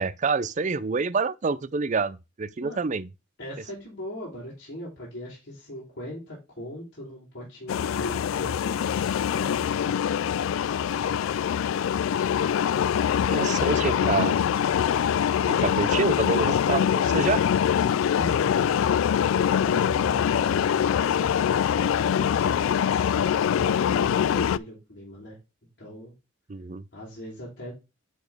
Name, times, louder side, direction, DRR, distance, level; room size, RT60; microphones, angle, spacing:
voice 1, 0.0-3.1 13.3-14.3 15.5-17.5 26.5-26.8, right 4 dB, 40° right, 0.5 m, -27 dB
voice 2, 3.4-9.8 13.1-14.4 21.7-25.4 25.8-26.1 26.9-27.7, equal, 60° left, 3.4 m, -40 dB
sound 1, 7.7-24.6, left 8 dB, 90° left, 0.3 m, -24 dB
10.5 x 4.3 x 3.5 m
head